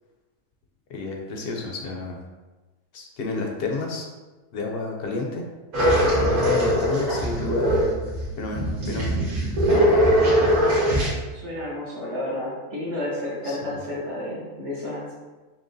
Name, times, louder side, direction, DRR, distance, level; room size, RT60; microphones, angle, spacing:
voice 1, 0.9-2.2 2.9-4.1 4.5-5.4 6.1-9.2 13.4-13.8, left 3 dB, 65° left, 1 dB, 0.6 m, -30 dB
sound 1, 5.7-11.1, equal, 85° right, 1.6 m, -21 dB
voice 2, 11.3-15.1, left 1 dB, 55° right, -9 dB, 1.2 m, -31 dB
5.9 x 2.2 x 2.6 m, 1.2 s
omnidirectional pair, 1.5 m